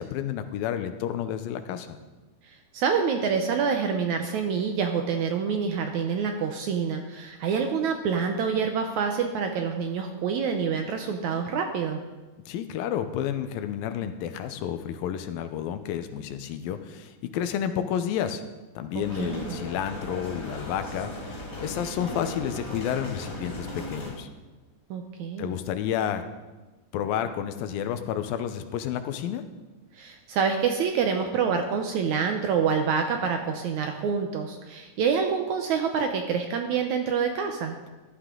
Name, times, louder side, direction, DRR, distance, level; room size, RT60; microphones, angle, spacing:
voice 1, 0.0-2.0 12.5-18.4 18.8-24.3 25.4-26.2 26.9-29.4, left 9 dB, 85° left, 9 dB, 2.5 m, -30 dB
voice 2, 2.7-12.0 19.2-19.6 24.9-25.5 30.0-37.8, right 6 dB, 75° right, 4 dB, 1.8 m, -27 dB
sound 1, 19.0-24.1, left 1 dB, 25° left, 4.0 m, -37 dB
14.5 x 11.5 x 3.8 m, 1.2 s
omnidirectional pair, 4.1 m